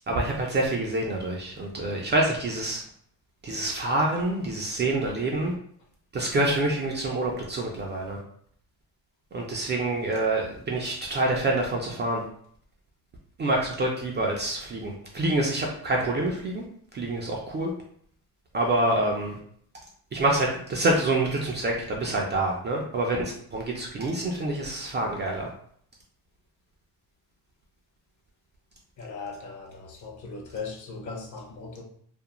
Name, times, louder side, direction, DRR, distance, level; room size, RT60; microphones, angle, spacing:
voice 1, 0.1-2.8 3.4-5.5 6.1-8.2 9.3-12.2 13.4-16.6 16.9-17.7 18.5-19.4 20.1-25.5, right 2 dB, 25° right, -1 dB, 0.4 m, -27 dB
voice 2, 29.0-31.8, left 4 dB, 45° left, 0 dB, 0.7 m, -38 dB
2.5 x 2.0 x 2.9 m, 0.63 s
cardioid pair, 110°, 42 cm